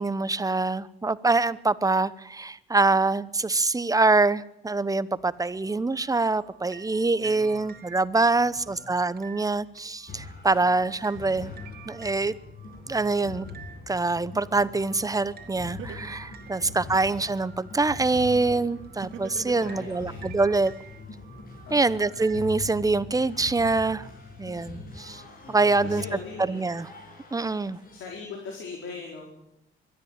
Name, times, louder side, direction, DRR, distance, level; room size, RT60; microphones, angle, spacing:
voice 1, 0.0-11.5 11.9-12.3 12.9-13.5 13.9-20.7 21.7-24.1 24.4-25.2 25.5-26.0 26.5-26.9 27.3-27.8, right 3 dB, 15° right, 16 dB, 0.9 m, -25 dB
sound 1, 5.2-22.5, right 7 dB, 50° right, 2.5 m, -51 dB
voice 2, 7.2-7.7 8.5-9.0 10.5-11.0 16.6-17.0 19.5-20.3 21.7-22.1 25.4-26.6 27.9-29.3, left 4 dB, 75° left, 0 dB, 4.5 m, -42 dB
sound 2, 10.1-28.2, left 4 dB, 45° left, 6.3 m, -43 dB
Laughter, 15.8-17.2 19.0-20.2, right 8 dB, 75° right, 2.3 m, -40 dB
22.0 x 13.0 x 8.9 m, 0.84 s
cardioid pair, 90°, 20 cm